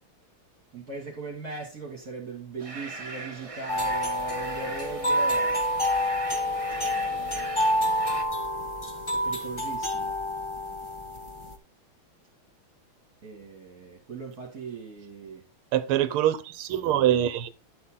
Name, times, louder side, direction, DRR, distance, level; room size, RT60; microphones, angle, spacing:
voice 1, 0.7-5.6 6.8-7.6 9.1-10.1 13.2-15.4, right 4 dB, 45° right, 2.9 m, -39 dB
sound 1, 2.6-8.2, right 2 dB, 20° right, 1.1 m, -40 dB
sound 2, 3.7-11.5, equal, 15° left, 1.2 m, -28 dB
voice 2, 15.7-17.5, right 11 dB, 85° right, 1.7 m, -24 dB
10.5 x 7.9 x 3.8 m
omnidirectional pair, 2.3 m